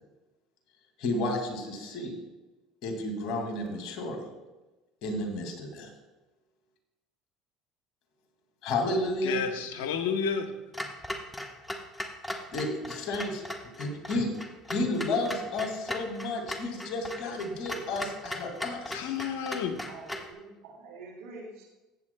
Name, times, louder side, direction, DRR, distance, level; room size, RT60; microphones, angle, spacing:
voice 1, 1.0-2.1 2.8-4.2 5.0-5.9 8.6-9.4 12.5-13.4 13.8-14.3 14.7-19.1, left 2 dB, 60° left, 3 dB, 2.3 m, -31 dB
voice 2, 9.2-10.5 18.8-19.8, left 6 dB, 85° left, 6 dB, 1.1 m, -31 dB
Clock, 10.7-20.3, left 1 dB, 10° left, 1.2 m, -38 dB
voice 3, 19.9-21.6, right 3 dB, 80° right, 0 dB, 2.1 m, -46 dB
15.0 x 8.0 x 2.3 m, 1.1 s
supercardioid pair, 85°, 0 cm